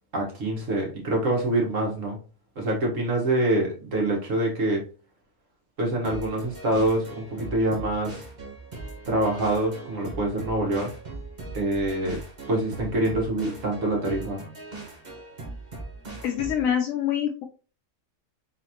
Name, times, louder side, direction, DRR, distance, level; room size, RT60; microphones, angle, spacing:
voice 1, 0.1-2.2 2.6-4.8 5.8-8.2 9.1-10.9 11.5-12.2 12.5-14.4, right 1 dB, 75° right, -1 dB, 1.9 m, -25 dB
sound 1, 6.0-16.7, right 2 dB, 35° right, 1.3 m, -40 dB
voice 2, 16.2-17.4, left 9 dB, 85° left, 3 dB, 1.0 m, -25 dB
4.1 x 4.0 x 2.9 m, 0.36 s
omnidirectional pair, 1.4 m